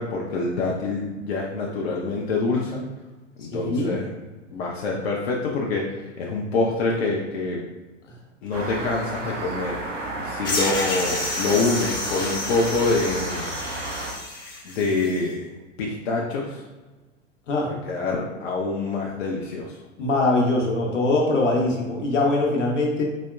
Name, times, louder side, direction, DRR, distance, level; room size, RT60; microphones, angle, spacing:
voice 1, 0.0-2.8 3.4-4.1 4.5-7.6 8.4-9.9 10.2-13.5 14.6-15.5 15.8-16.6 17.6-19.8, left 3 dB, 55° left, -2 dB, 0.6 m, -26 dB
voice 2, 3.5-3.9 17.5-17.7 20.0-23.0, left 2 dB, 70° left, -1 dB, 1.0 m, -22 dB
sound 1, 8.5-14.1, right 2 dB, 75° right, 0.9 m, -32 dB
sound 2, 10.4-15.2, left 2 dB, 10° left, 0.5 m, -30 dB
4.1 x 2.8 x 2.3 m, 1.2 s
figure-of-eight pair, 95°, 38 cm